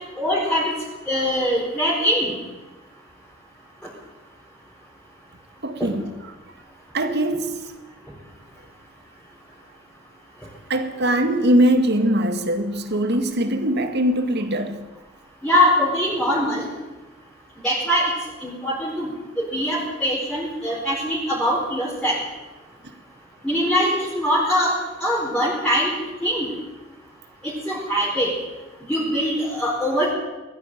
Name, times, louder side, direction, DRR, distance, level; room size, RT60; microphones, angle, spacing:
voice 1, 0.2-0.7 1.1-2.3 5.8-5.9 15.4-16.7 17.6-18.1 18.4-19.1 19.4-22.2 23.4-26.4 27.4-28.3 28.9-30.1, equal, 5° left, 4.6 m, -22 dB
voice 2, 5.6-6.1 6.9-7.6 10.7-14.9, right 1 dB, 60° right, 2.1 m, -21 dB
20.0 x 14.0 x 9.3 m
head